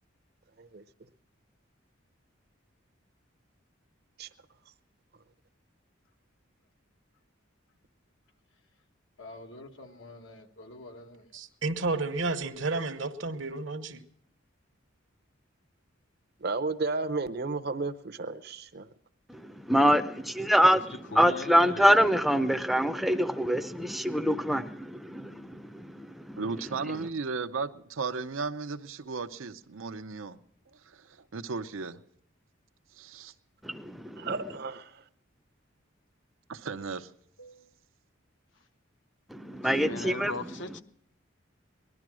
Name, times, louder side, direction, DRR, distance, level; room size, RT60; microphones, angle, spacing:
voice 1, 9.2-11.2 37.4-37.5, left 1 dB, 80° left, 1.2 m, -47 dB
voice 2, 11.3-14.0, right 3 dB, 70° right, 1.0 m, -31 dB
voice 3, 16.4-18.9 34.2-34.9, right 3 dB, 50° right, 0.7 m, -33 dB
voice 4, 19.3-26.4 33.6-34.3 39.3-40.3, equal, ahead, 0.5 m, -25 dB
voice 5, 21.1-22.1 39.6-40.8, left 3 dB, 65° left, 0.7 m, -39 dB
voice 6, 26.4-30.4 30.9-32.0 32.9-33.3 36.5-37.1, right 4 dB, 90° right, 0.7 m, -35 dB
19.0 x 12.0 x 6.2 m
head